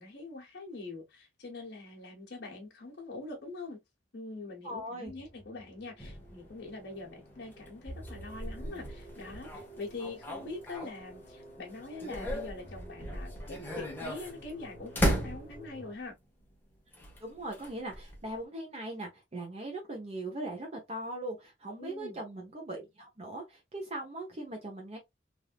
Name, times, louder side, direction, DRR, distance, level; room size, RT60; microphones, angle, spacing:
voice 1, 0.0-3.8 4.1-16.2 21.8-22.2, left 3 dB, 60° left, 1.1 m, -44 dB
voice 2, 4.6-5.1 17.2-25.0, right 1 dB, 35° right, 0.7 m, -40 dB
sound 1, 5.1-15.9, right 1 dB, 35° left, 1.3 m, -51 dB
sound 2, 6.0-11.3 11.7-15.9 16.9-18.4, equal, 10° left, 0.9 m, -37 dB
3.4 x 2.6 x 2.2 m
head